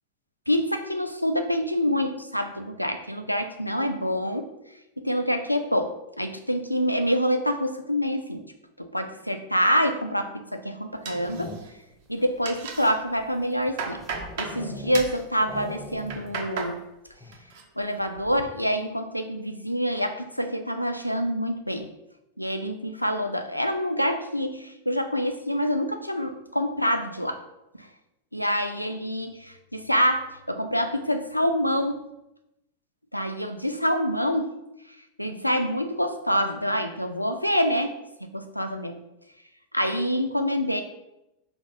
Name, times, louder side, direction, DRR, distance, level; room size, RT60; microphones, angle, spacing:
voice 1, 0.5-4.5 5.0-8.4 8.8-11.6 12.1-14.0 14.4-16.8 17.8-21.9 22.4-27.4 27.8-27.9 28.3-32.0 33.1-34.6 35.2-39.0 39.7-40.8, equal, 90° left, 6 dB, 0.3 m, -26 dB
sound 1, 10.9-11.9 12.6-15.1 15.4-16.5 16.8-16.9 17.2-17.5, left 2 dB, 15° left, 0.5 m, -41 dB
sound 2, 11.0-11.9 12.2-12.9 13.4-14.6 14.9-15.2 15.9-16.7 17.1-17.6 18.0-18.4, right 5 dB, 50° right, 0.7 m, -35 dB
3.5 x 2.4 x 4.3 m, 0.90 s
figure-of-eight pair, 90°, 0 cm